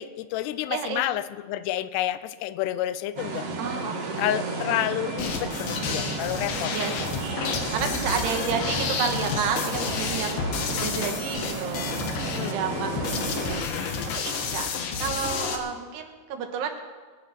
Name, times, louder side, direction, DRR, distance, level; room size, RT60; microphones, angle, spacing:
voice 1, 0.0-3.5 4.2-6.7 12.2-12.6 14.7-14.9, left 13 dB, 85° left, 14 dB, 2.7 m, -29 dB
voice 2, 0.7-1.1 3.6-5.3 6.7-7.2 7.7-10.5 10.7-11.9 12.3-13.8 14.1-14.7 15.0-16.8, right 6 dB, 80° right, 5 dB, 3.4 m, -31 dB
sound 1, 3.2-13.6, right 3 dB, 50° right, 2.1 m, -33 dB
sound 2, 5.2-15.6, left 6 dB, 65° left, 2.6 m, -31 dB
22.5 x 9.7 x 5.8 m, 1.5 s
omnidirectional pair, 4.7 m